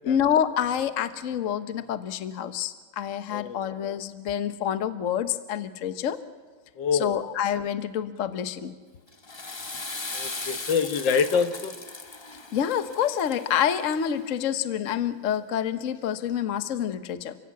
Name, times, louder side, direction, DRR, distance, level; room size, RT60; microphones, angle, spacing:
voice 1, 0.0-6.2 6.9-8.7 12.5-17.4, left 9 dB, 50° left, 11 dB, 1.0 m, -27 dB
voice 2, 3.3-3.7 6.8-7.2 10.1-11.7, left 6 dB, 65° left, 9 dB, 1.7 m, -26 dB
Water / Toilet flush, 9.1-14.3, left 3 dB, 25° left, 0.6 m, -38 dB
29.0 x 16.0 x 8.5 m, 1.5 s
omnidirectional pair, 2.2 m